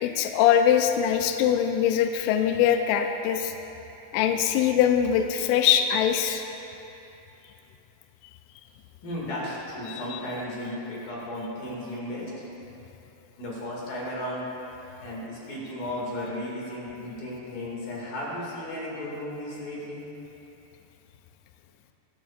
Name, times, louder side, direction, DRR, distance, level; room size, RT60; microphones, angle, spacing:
voice 1, 0.0-3.5 4.1-6.4 10.1-10.2, left 9 dB, 80° left, 5 dB, 2.7 m, -22 dB
voice 2, 9.0-12.3 13.4-14.5 15.0-20.1, left 1 dB, 55° left, -5 dB, 3.5 m, -34 dB
25.0 x 11.0 x 2.5 m, 2.9 s
omnidirectional pair, 5.7 m